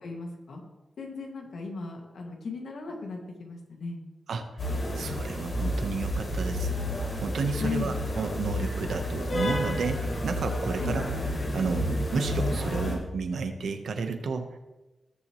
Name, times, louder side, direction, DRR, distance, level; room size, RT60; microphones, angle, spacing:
voice 1, 0.0-0.6 1.0-4.0 7.6-7.9 10.8-11.0, left 4 dB, 80° left, 1 dB, 2.2 m, -36 dB
sound 1, 4.6-13.0, left 1 dB, 55° left, 3.6 m, -30 dB
voice 2, 4.9-6.7 7.2-11.0 11.5-14.6, right 4 dB, 80° right, 6 dB, 1.2 m, -32 dB
18.5 x 7.2 x 3.2 m, 1.1 s
cardioid pair, 65°, 0 cm